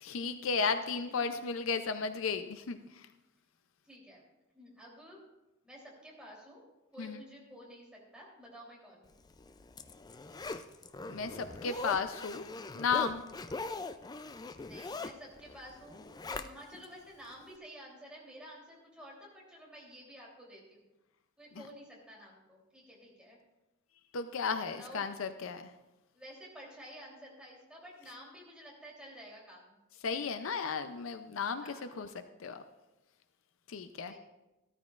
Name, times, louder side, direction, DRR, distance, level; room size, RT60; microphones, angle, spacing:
voice 1, 0.0-3.1 7.0-7.2 10.5-10.6 11.1-12.5 12.7-13.2 21.6-21.7 24.1-25.6 30.0-32.1 32.4-32.6 33.7-34.1, left 5 dB, 70° left, 9 dB, 0.5 m, -34 dB
voice 2, 3.8-4.2 4.5-5.2 5.6-6.6 6.9-9.2 14.6-20.9 21.4-23.4 24.8-25.2 26.1-29.8 31.6-32.0 34.1-34.2, equal, 5° right, -5 dB, 3.1 m, -51 dB
Zipper (clothing), 9.3-16.9 17.3-17.4, left 3 dB, 20° left, 0.3 m, -42 dB
14.5 x 13.5 x 2.4 m, 1.0 s
head